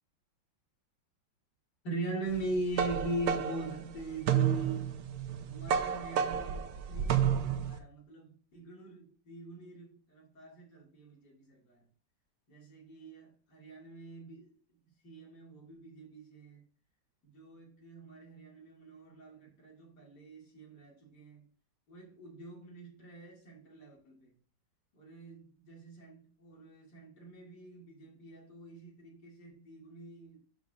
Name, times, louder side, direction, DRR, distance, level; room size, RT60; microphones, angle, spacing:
voice 1, 1.8-4.9 5.5-11.7 12.5-14.5 15.0-16.6 17.3-21.4 21.9-24.3 24.9-30.4, right 2 dB, 65° left, 2.9 m, -42 dB
sound 1, 2.3-7.8, right 8 dB, 65° right, 1.1 m, -31 dB
12.5 x 5.3 x 2.5 m
omnidirectional pair, 2.0 m